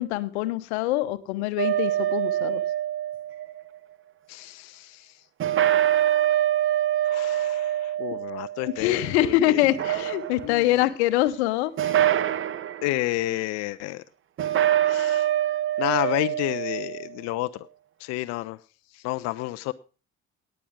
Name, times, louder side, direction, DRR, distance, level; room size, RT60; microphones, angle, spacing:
voice 1, 0.0-2.6 8.8-11.9, left 14 dB, 65° left, 0.9 m, -24 dB
sound 1, 1.6-3.6 5.4-9.1 9.6-10.6 11.8-12.9 14.4-17.1, right 12 dB, 35° right, 0.8 m, -25 dB
voice 2, 4.3-5.2 7.1-9.0 9.5-9.6 10.4-10.7 12.8-14.0 14.5-15.3 15.8-17.7 18.0-18.6 18.9-19.7, left 18 dB, 50° left, 0.5 m, -30 dB
18.5 x 7.8 x 3.5 m
figure-of-eight pair, 50°, 35 cm